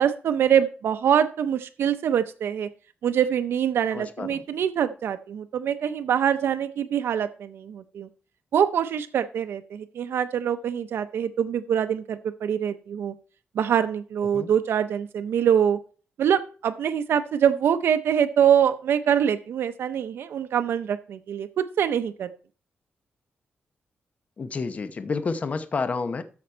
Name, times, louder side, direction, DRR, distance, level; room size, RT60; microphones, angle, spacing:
voice 1, 0.0-2.7 3.0-8.1 8.5-13.1 13.5-15.8 16.2-22.3, right 8 dB, 80° right, 0.6 m, -24 dB
voice 2, 3.9-4.4 14.3-14.5 24.4-26.2, left 4 dB, 35° left, 0.8 m, -29 dB
13.0 x 5.2 x 4.4 m
wide cardioid pair, 140°, 4 cm